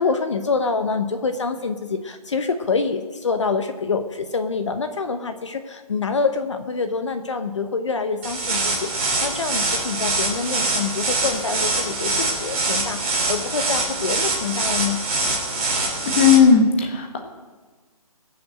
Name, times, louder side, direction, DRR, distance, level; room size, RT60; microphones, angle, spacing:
voice 1, 0.0-15.0, left 4 dB, 50° left, 7 dB, 1.0 m, -26 dB
sound 1, 8.2-16.4, right 3 dB, 20° right, 3.1 m, -24 dB
voice 2, 16.1-16.6 16.9-17.2, left 7 dB, 20° left, 2 dB, 1.4 m, -14 dB
20.0 x 7.0 x 7.7 m, 1.3 s
hypercardioid pair, 175°, 19 cm